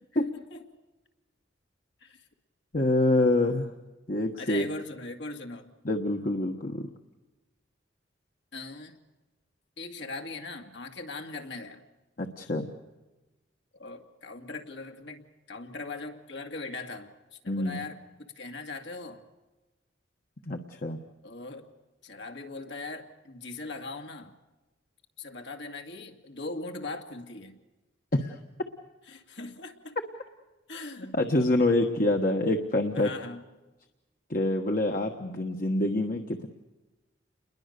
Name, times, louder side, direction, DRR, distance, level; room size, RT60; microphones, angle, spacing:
voice 1, 2.7-3.7 4.1-4.6 5.8-6.9 12.2-12.7 17.5-17.8 20.5-21.0 28.1-28.4 31.1-33.1 34.3-36.5, left 1 dB, 45° left, 3 dB, 1.4 m, -26 dB
voice 2, 4.4-5.7 8.5-9.0 9.8-11.8 13.7-19.2 21.2-21.7 22.0-24.4 25.2-27.6 29.1-30.0 30.7-31.2 32.9-33.5, left 3 dB, 70° left, 4 dB, 2.3 m, -40 dB
29.5 x 21.5 x 6.8 m, 1.1 s
head